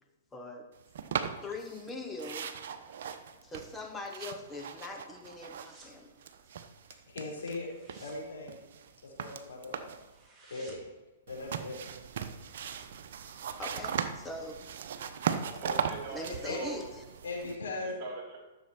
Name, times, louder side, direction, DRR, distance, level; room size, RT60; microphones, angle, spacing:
voice 1, 0.3-0.7 1.4-2.5 3.4-6.1 13.6-14.6 16.1-17.0, left 2 dB, 10° left, 3 dB, 1.1 m, -41 dB
sound 1, 1.0-1.9 2.2-5.9 6.2-7.6 7.9-10.1 11.3-17.6, right 7 dB, 60° right, 0.9 m, -38 dB
sound 2, 5.3-6.0 6.3-6.6 6.9-7.0 7.4-9.3 9.6-9.7 10.0-11.1 11.4-11.5, right 2 dB, 15° right, 2.6 m, -57 dB
voice 2, 7.1-7.7 8.0-8.6 9.0-9.9 10.5-10.8 11.3-11.9 16.5-16.7 17.2-17.9, left 2 dB, 75° left, -1 dB, 4.2 m, -39 dB
voice 3, 15.6-16.9 17.8-18.4, right 3 dB, 45° right, 0 dB, 2.8 m, -41 dB
14.0 x 6.9 x 4.5 m, 1.1 s
hypercardioid pair, 120°, 0 cm